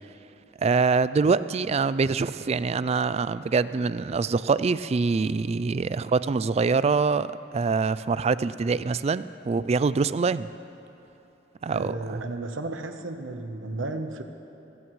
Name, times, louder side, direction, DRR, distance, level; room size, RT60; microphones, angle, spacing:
voice 1, 0.6-7.3 7.5-10.5 11.6-12.2, right 4 dB, 35° right, 15 dB, 0.3 m, -24 dB
voice 2, 11.7-14.2, right 2 dB, 85° right, 6 dB, 1.0 m, -33 dB
28.0 x 15.5 x 3.2 m, 3.0 s
head